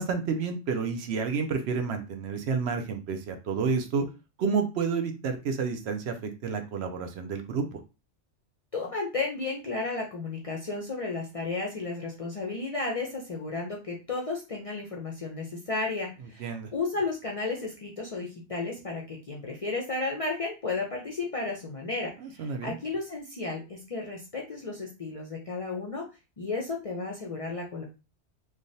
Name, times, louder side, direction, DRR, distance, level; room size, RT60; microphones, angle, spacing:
voice 1, 0.0-4.0 4.4-7.8 16.4-16.7 22.2-22.7, right 5 dB, 70° right, 6 dB, 0.8 m, -30 dB
voice 2, 8.7-26.1 26.4-27.8, left 3 dB, 45° left, -1 dB, 0.5 m, -33 dB
3.2 x 2.3 x 2.6 m, 0.30 s
omnidirectional pair, 1.2 m